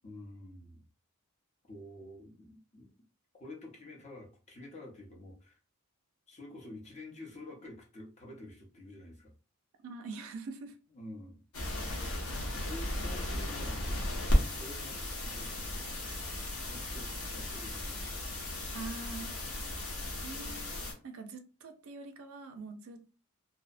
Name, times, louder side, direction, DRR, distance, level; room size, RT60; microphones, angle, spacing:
voice 1, 0.0-0.8 1.7-2.9 3.4-5.6 6.3-9.3 10.9-11.4 12.6-14.1 14.5-16.4 16.7-18.0, left 1 dB, 30° left, 0.6 m, -49 dB
voice 2, 9.8-10.8 18.7-19.4 20.2-20.8 21.0-23.0, right 3 dB, 65° right, 0.4 m, -44 dB
sound 1, 11.5-20.9, left 1 dB, 80° left, 0.9 m, -35 dB
2.6 x 2.0 x 2.4 m
head